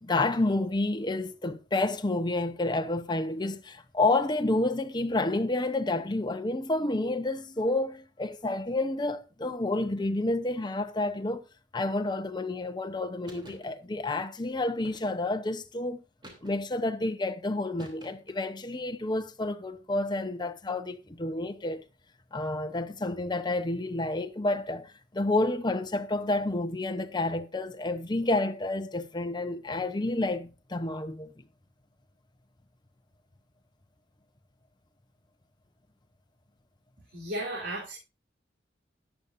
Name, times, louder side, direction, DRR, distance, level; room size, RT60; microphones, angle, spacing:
voice 1, 0.0-11.5 11.7-16.0 16.4-21.8 22.3-31.3, left 2 dB, 25° left, 0.9 m, -29 dB
sound 1, 13.3-13.7 14.8-15.4 16.2-16.8 17.8-18.4, right 1 dB, 25° right, 3.2 m, -50 dB
voice 2, 37.1-38.0, right 1 dB, 85° right, 3.5 m, -34 dB
14.0 x 10.0 x 2.6 m
head